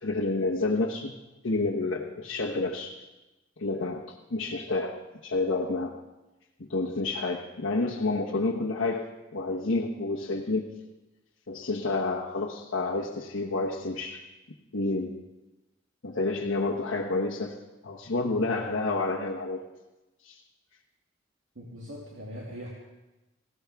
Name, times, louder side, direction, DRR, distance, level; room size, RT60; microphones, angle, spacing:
voice 1, 0.0-3.1 3.6-6.0 6.6-9.1 9.3-10.7 11.5-14.2 14.7-15.2 16.0-17.6 17.8-19.6 20.2-20.4, left 3 dB, 75° left, -2 dB, 1.1 m, -29 dB
voice 2, 21.5-22.7, equal, 80° right, -4 dB, 2.3 m, -41 dB
19.5 x 16.5 x 3.5 m, 1.0 s
head